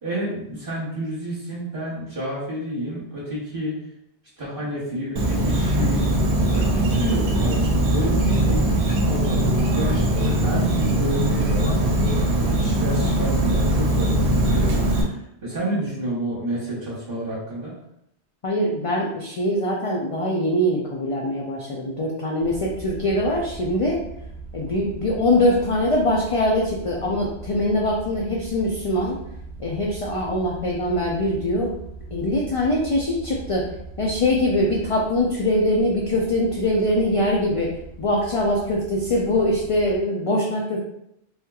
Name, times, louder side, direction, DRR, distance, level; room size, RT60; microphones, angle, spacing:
voice 1, 0.0-3.8 4.4-6.0 6.5-17.7, right 1 dB, 55° right, -7 dB, 1.1 m, -30 dB
Insect, 5.2-15.0, right 1 dB, 80° right, 0.9 m, -21 dB
voice 2, 18.4-24.0 24.5-29.1 29.6-31.7 32.1-33.6 34.0-37.7 38.0-40.8, left 1 dB, 55° left, -2 dB, 0.3 m, -22 dB
sound 1, 22.4-40.0, right 3 dB, 25° right, 0.6 m, -40 dB
3.4 x 2.8 x 2.3 m, 0.78 s
omnidirectional pair, 1.1 m